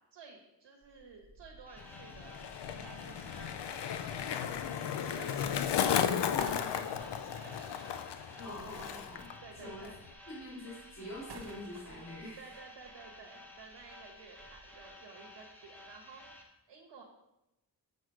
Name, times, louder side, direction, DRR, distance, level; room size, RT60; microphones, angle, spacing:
voice 1, 0.0-7.9 9.4-10.0 12.4-17.0, right 4 dB, 85° right, -1 dB, 1.4 m, -53 dB
sound 1, 0.8-9.3 9.6-14.9, right 3 dB, 65° right, 1.2 m, -57 dB
sound 2, 1.7-16.4, left 1 dB, 5° left, 1.1 m, -54 dB
Skateboard, 1.8-9.3 9.6-10.1, left 8 dB, 75° left, 0.6 m, -34 dB
voice 2, 8.4-9.3 9.6-9.9 10.3-12.4, left 1 dB, 40° left, -6 dB, 2.9 m, -45 dB
6.5 x 6.2 x 4.7 m, 0.92 s
wide cardioid pair, 170°, 42 cm